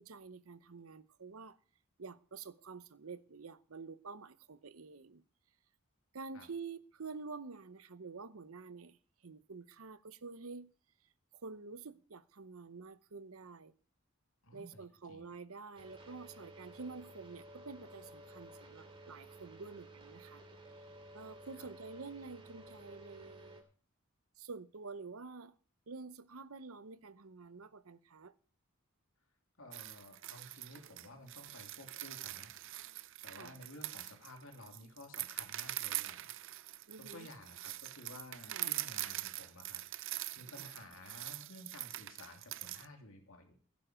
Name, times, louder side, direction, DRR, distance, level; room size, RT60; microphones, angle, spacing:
voice 1, 0.0-1.6 2.0-5.2 6.1-9.0 9.2-10.7 11.4-13.7 14.5-20.4 21.1-23.6 24.4-25.5 25.9-28.3 33.3-33.5 36.9-37.3 38.5-38.7 40.6-40.7, right 4 dB, 85° right, 0.8 m, -48 dB
voice 2, 14.4-15.3 21.6-21.7 29.6-32.5 33.2-39.8 40.4-43.6, left 1 dB, 75° left, 2.9 m, -54 dB
sound 1, 15.7-23.6, right 1 dB, 25° right, 2.7 m, -54 dB
sound 2, 29.7-42.8, right 16 dB, 65° right, 0.5 m, -43 dB
16.0 x 9.3 x 5.1 m
head